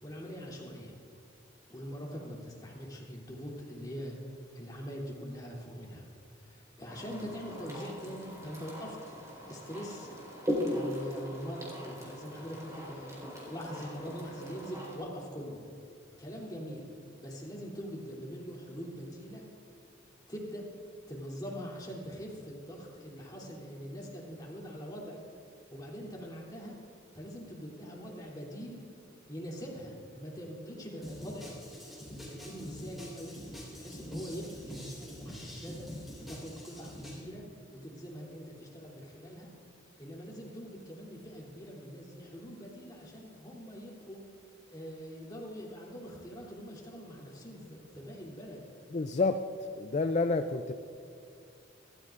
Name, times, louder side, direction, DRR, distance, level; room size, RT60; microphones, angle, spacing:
voice 1, 0.0-1.0 1.7-10.1 10.7-15.6 16.2-16.9 17.2-19.4 20.3-20.6 21.1-25.2 25.7-26.8 27.1-28.8 29.3-31.6 32.2-33.4 33.7-35.9 36.3-37.4 37.7-39.5 40.0-44.2 44.7-48.6, equal, 20° left, -3 dB, 3.0 m, -43 dB
sound 1, 6.9-15.0, equal, 15° right, 4.3 m, -39 dB
sound 2, 31.0-37.2, equal, ahead, 4.2 m, -44 dB
voice 2, 48.9-49.4 49.8-50.7, left 3 dB, 40° left, 8 dB, 0.4 m, -29 dB
27.0 x 13.5 x 2.5 m, 2.4 s
head